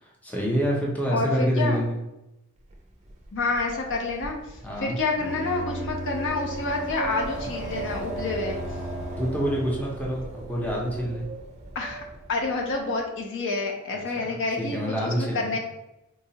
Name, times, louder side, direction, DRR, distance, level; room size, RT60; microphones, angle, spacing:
voice 1, 0.0-2.0 4.6-5.0 9.2-11.3 14.2-14.3 14.6-15.5, equal, 5° left, -3 dB, 0.6 m, -27 dB
voice 2, 1.1-1.8 3.3-8.6 11.7-12.0 12.3-15.6, left 3 dB, 60° left, 1 dB, 0.6 m, -28 dB
Wind, 2.7-12.8, right 3 dB, 35° right, 0.5 m, -38 dB
Bowed string instrument, 4.9-10.0, right 1 dB, 85° left, 0.9 m, -37 dB
3.9 x 2.4 x 2.8 m, 0.93 s
head